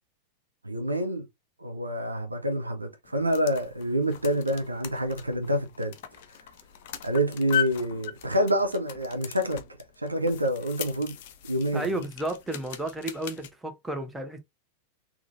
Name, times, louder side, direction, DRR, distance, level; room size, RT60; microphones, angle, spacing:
voice 1, 0.6-1.3 1.6-5.9 7.0-9.6 10.0-11.2 11.4-12.0, equal, 80° right, 0.8 m, -27 dB
sound 1, 3.0-13.5, left 10 dB, 50° left, 0.6 m, -38 dB
voice 2, 11.7-14.4, right 2 dB, 5° right, 0.9 m, -32 dB
3.7 x 3.1 x 2.5 m
figure-of-eight pair, 90°, 0 cm